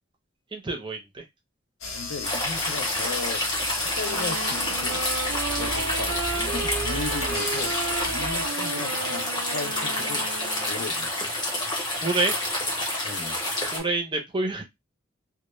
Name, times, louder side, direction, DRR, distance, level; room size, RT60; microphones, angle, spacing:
voice 1, 0.5-1.2 12.0-12.4 13.7-14.6, right 2 dB, 25° right, 0.5 m, -27 dB
squeaky chair octave whale, 1.8-8.5, left 2 dB, 85° left, 0.8 m, -35 dB
voice 2, 1.9-3.4 4.0-5.0 5.6-7.8 8.1-10.3 10.7-11.1 13.0-13.4, left 4 dB, 65° left, 0.4 m, -36 dB
sound 1, 2.2-13.8, left 1 dB, 20° left, 0.7 m, -28 dB
Wind instrument woodwind instrument, 4.0-10.8, right 4 dB, 90° right, 0.5 m, -33 dB
2.0 x 2.0 x 3.0 m
head